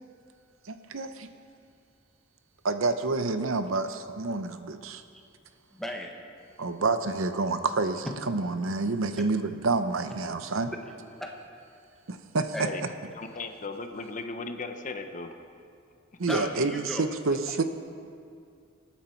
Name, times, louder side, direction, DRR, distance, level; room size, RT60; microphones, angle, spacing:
voice 1, 0.7-1.3 2.6-5.0 6.6-10.7 12.1-12.5 16.2-17.6, right 3 dB, 80° right, 9 dB, 0.8 m, -28 dB
voice 2, 5.7-6.2 9.2-9.3 10.7-11.4 12.5-12.8 16.3-17.1, left 1 dB, ahead, 1 dB, 1.4 m, -36 dB
voice 3, 13.1-15.3 17.5-17.6, left 3 dB, 40° left, 6 dB, 0.9 m, -37 dB
25.5 x 9.4 x 4.5 m, 2.4 s
head